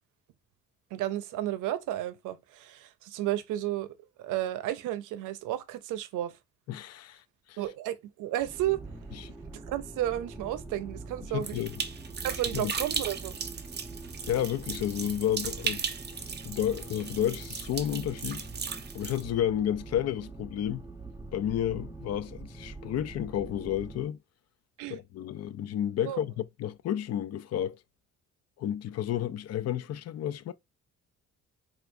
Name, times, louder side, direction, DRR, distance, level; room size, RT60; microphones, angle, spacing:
voice 1, 0.9-6.4 7.6-8.8 9.5-11.6 12.2-13.4 24.8-25.0 26.1-26.2, right 13 dB, 90° right, 0.6 m, -33 dB
voice 2, 6.7-7.2 7.5-7.6 9.3-9.4 11.3-11.7 12.5-12.7 14.3-15.9 16.2-18.4 18.9-20.8 21.3-24.2 24.9-27.8 28.6-30.5, left 10 dB, 55° left, 0.4 m, -31 dB
sound 1, 8.4-24.1, right 3 dB, 10° right, 1.0 m, -44 dB
sound 2, 11.4-19.2, right 6 dB, 35° right, 0.7 m, -37 dB
4.5 x 2.4 x 2.6 m
cardioid pair, 90°, 30 cm